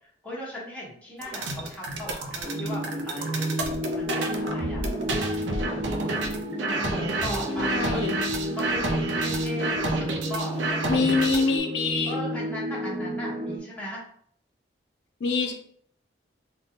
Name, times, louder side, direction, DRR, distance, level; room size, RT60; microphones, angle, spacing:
voice 1, 0.0-4.9 5.7-8.0 8.6-10.8 11.1-11.4 12.1-14.0, equal, 5° left, -6 dB, 1.1 m, -38 dB
sound 1, 1.2-11.6, right 2 dB, 75° right, 0.5 m, -30 dB
sound 2, 2.4-13.6, equal, 20° right, 0.6 m, -31 dB
voice 2, 7.5-8.1 10.9-12.2 15.2-15.5, left 4 dB, 65° left, 3 dB, 0.5 m, -25 dB
3.8 x 2.2 x 3.7 m, 0.63 s
head